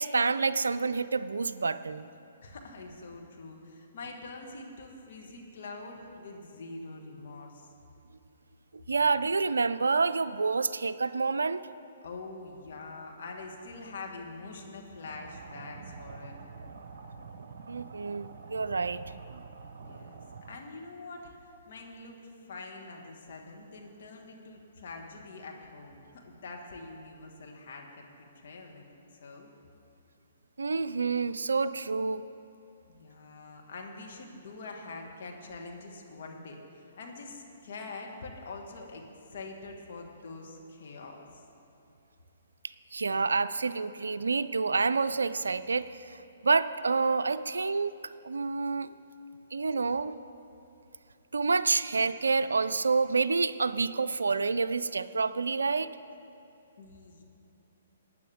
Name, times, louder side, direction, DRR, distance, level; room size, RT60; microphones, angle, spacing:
voice 1, 0.0-2.1 8.9-11.6 17.7-19.0 19.3-19.4 30.6-32.2 42.9-48.9 49.5-50.1 51.3-55.9, right 4 dB, 80° right, 13 dB, 0.4 m, -28 dB
voice 2, 2.4-7.7 12.0-16.3 19.8-21.3 21.7-29.5 32.9-41.4 56.8-57.2, left 3 dB, 60° left, 1 dB, 1.8 m, -45 dB
sound 1, 15.0-20.6, right 5 dB, 55° right, 0.9 m, -46 dB
19.0 x 9.3 x 3.6 m, 2.9 s
figure-of-eight pair, 130°, 0 cm